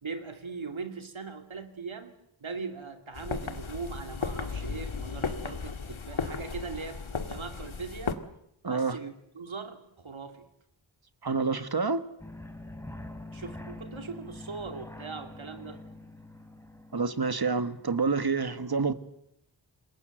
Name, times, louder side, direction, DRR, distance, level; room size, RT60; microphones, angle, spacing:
voice 1, 0.0-2.1 2.4-8.2 8.7-10.5 13.3-15.8, right 4 dB, 85° right, 2.7 m, -40 dB
sound 1, 3.1-8.1, left 5 dB, 90° left, 1.8 m, -35 dB
voice 2, 8.6-9.0 11.2-12.0 16.9-18.9, right 4 dB, 50° right, 1.5 m, -28 dB
sound 2, 12.2-17.3, left 2 dB, 5° left, 3.5 m, -44 dB
27.5 x 22.0 x 7.9 m
wide cardioid pair, 60°, 46 cm